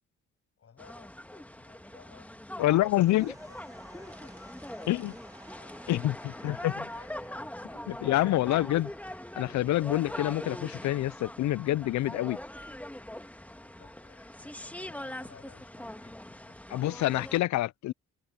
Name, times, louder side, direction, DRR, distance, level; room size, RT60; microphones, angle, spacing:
voice 1, 0.6-8.5 13.6-16.6, left 7 dB, 50° left, 7.3 m, -59 dB
sound 1, 0.8-17.4, left 1 dB, 5° left, 1.7 m, -42 dB
voice 2, 2.6-3.3 4.9-5.1 5.9-6.7 7.9-8.9 9.4-12.4 16.7-17.9, left 15 dB, 70° left, 0.5 m, -27 dB
sound 2, 3.1-9.5, right 2 dB, 10° right, 1.8 m, -55 dB
cardioid pair, 90°, 30 cm